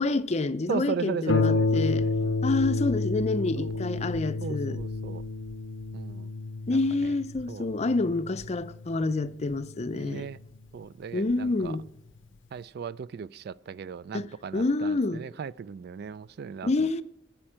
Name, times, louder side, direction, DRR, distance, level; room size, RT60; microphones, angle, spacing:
voice 1, 0.0-2.0 2.4-4.8 6.7-10.3 11.1-11.8 14.1-15.2 16.6-17.0, left 3 dB, 35° left, 0.5 m, -28 dB
voice 2, 0.7-2.5 3.6-3.7 4.4-5.2 5.9-6.3 6.7-6.8 7.5-7.6 9.9-10.4 10.7-11.7 12.5-17.0, right 6 dB, 55° right, 0.3 m, -37 dB
Harp, 1.3-10.5 11.3-11.4 11.9-12.0, left 3 dB, 85° left, 0.6 m, -30 dB
13.0 x 5.7 x 8.7 m
head